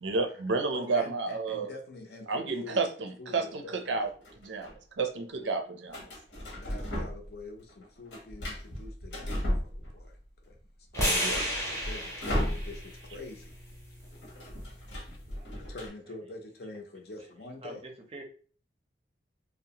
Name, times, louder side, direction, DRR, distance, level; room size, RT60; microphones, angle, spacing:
voice 1, 0.0-1.7 2.3-4.1 4.4-6.1 11.0-11.4, right 3 dB, 80° right, 0.5 m, -31 dB
voice 2, 0.7-2.9 3.2-4.0 5.4-5.7 6.4-10.2 10.5-10.6 10.9-13.6 15.1-15.2 15.5-17.8, left 2 dB, 55° left, 0.5 m, -46 dB
sound 1, 3.9-4.7 5.9-7.4 7.7-10.2 10.5-10.6 10.9-13.1 13.4-13.5 13.8-15.9, equal, 75° left, 0.9 m, -35 dB
sound 2, 10.9-15.1, equal, 15° left, 0.6 m, -34 dB
voice 3, 15.2-15.7 17.6-18.2, right 2 dB, 30° right, 0.5 m, -46 dB
2.8 x 2.0 x 2.8 m
head